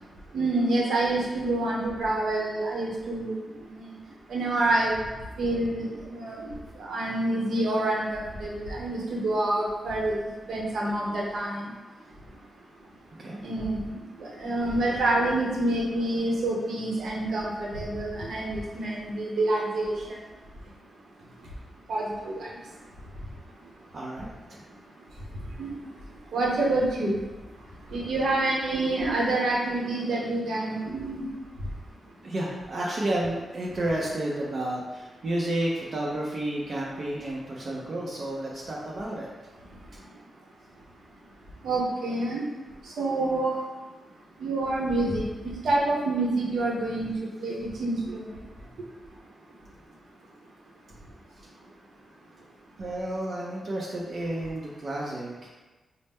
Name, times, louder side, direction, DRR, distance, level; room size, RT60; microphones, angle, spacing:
voice 1, 0.3-3.9 4.3-5.0 5.4-10.2 10.5-11.7 13.4-20.2 21.9-22.5 25.6-25.7 26.3-27.2 27.9-31.3 41.6-42.4 42.8-43.6 44.4-47.1 47.4-48.3, right 2 dB, 80° right, -3 dB, 0.8 m, -27 dB
voice 2, 23.9-24.6 32.2-39.3 52.8-55.5, right 1 dB, 50° right, -4 dB, 0.6 m, -31 dB
4.0 x 2.0 x 3.5 m, 1.2 s
cardioid pair, 85°, 0 cm